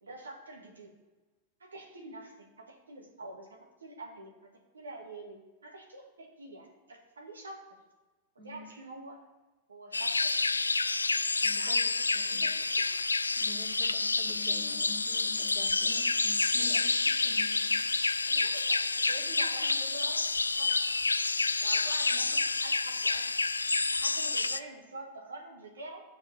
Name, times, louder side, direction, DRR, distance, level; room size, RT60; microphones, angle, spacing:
voice 1, 0.0-1.0 1.6-7.6 8.4-9.2 9.7-10.7 11.5-12.9 18.3-20.2 20.6-21.0 21.6-23.3 23.9-26.0, right 2 dB, 75° right, 0 dB, 1.9 m, -46 dB
sound 1, 9.9-24.6, left 3 dB, 80° left, 0.3 m, -29 dB
voice 2, 11.4-11.8 12.1-12.4 13.4-18.4, left 3 dB, 15° left, -1 dB, 2.1 m, -48 dB
7.3 x 5.5 x 7.0 m, 1.2 s
figure-of-eight pair, 90°, 0 cm